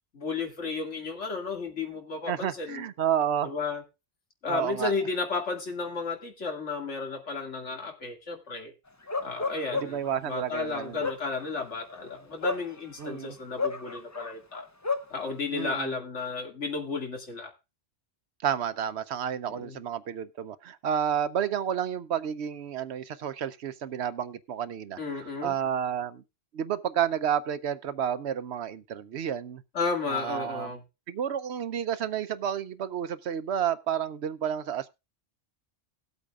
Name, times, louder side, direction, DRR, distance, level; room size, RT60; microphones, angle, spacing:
voice 1, 0.1-2.9 3.4-3.8 4.4-8.7 9.2-14.6 15.1-17.5 19.5-19.8 25.0-25.6 29.7-30.8, left 4 dB, 90° left, 2.6 m, -33 dB
voice 2, 2.3-3.5 4.5-4.9 9.7-11.1 13.0-13.4 15.5-16.0 18.4-25.0 25.4-26.2 26.5-29.6 30.1-30.8 31.1-34.9, right 9 dB, 70° right, 0.9 m, -30 dB
Bark, 9.1-10.1 10.8-13.1 13.6-15.1, left 4 dB, 20° left, 0.6 m, -32 dB
18.5 x 8.2 x 2.4 m
omnidirectional pair, 1.2 m